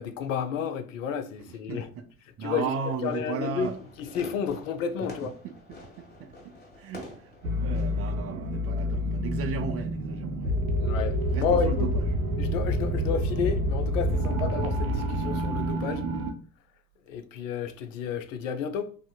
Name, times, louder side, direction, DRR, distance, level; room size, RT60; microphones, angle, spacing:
voice 1, 0.0-1.9 2.4-3.7 4.0-5.4 10.8-11.9 12.4-16.1 17.1-18.9, left 7 dB, 70° left, 0.5 m, -31 dB
voice 2, 1.7-2.0 2.4-3.7 5.4-6.3 6.8-10.5 11.3-12.0, right 5 dB, 35° right, 0.5 m, -35 dB
Fireworks, 2.9-8.1, left 2 dB, 25° left, 1.3 m, -47 dB
sound 1, 7.4-16.3, equal, 85° right, 0.6 m, -28 dB
3.3 x 2.6 x 2.2 m
figure-of-eight pair, 65°, 40 cm